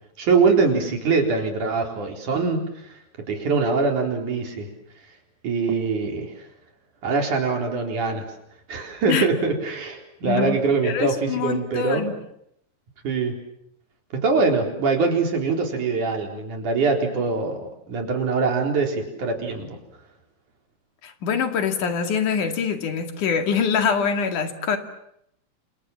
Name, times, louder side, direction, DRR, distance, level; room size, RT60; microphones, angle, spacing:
voice 1, 0.2-4.7 5.4-6.4 7.0-8.3 8.7-12.0 13.0-13.4 14.1-19.8, right 4 dB, 75° right, 3 dB, 5.6 m, -23 dB
voice 2, 10.2-10.6 10.8-12.1 21.0-24.8, left 6 dB, 80° left, 7 dB, 3.8 m, -24 dB
29.0 x 27.0 x 7.4 m, 0.74 s
omnidirectional pair, 3.6 m